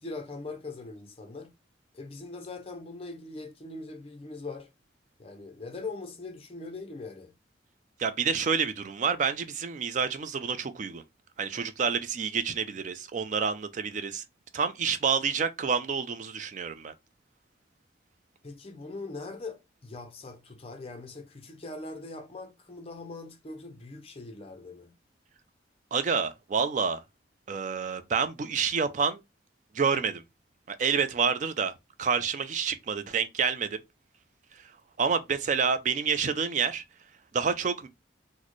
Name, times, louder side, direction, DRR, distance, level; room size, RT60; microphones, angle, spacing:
voice 1, 0.0-1.5 1.9-4.7 5.2-7.3 18.4-25.0, left 3 dB, 30° left, 0.5 m, -41 dB
voice 2, 8.0-11.0 11.4-14.2 14.5-16.9 25.9-27.0 27.5-29.2 29.7-30.2 30.7-31.7 32.0-33.8 34.6-34.7 35.0-36.8 37.3-37.9, right 6 dB, 40° right, 0.3 m, -28 dB
4.0 x 2.1 x 3.0 m
head